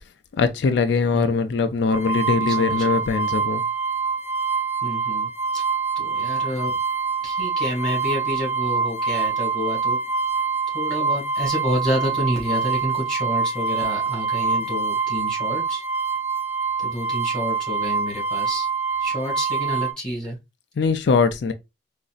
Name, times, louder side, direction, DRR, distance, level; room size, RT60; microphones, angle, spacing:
voice 1, 0.4-3.6 20.8-21.5, left 4 dB, 65° left, 0.4 m, -21 dB
sound 1, 1.9-19.9, right 5 dB, 15° right, 0.3 m, -25 dB
voice 2, 2.5-3.1 4.8-5.6 5.9-6.7 7.2-10.0 10.7-15.8 16.8-18.7 19.0-20.4, equal, 5° left, 1.5 m, -29 dB
3.9 x 2.5 x 2.3 m
head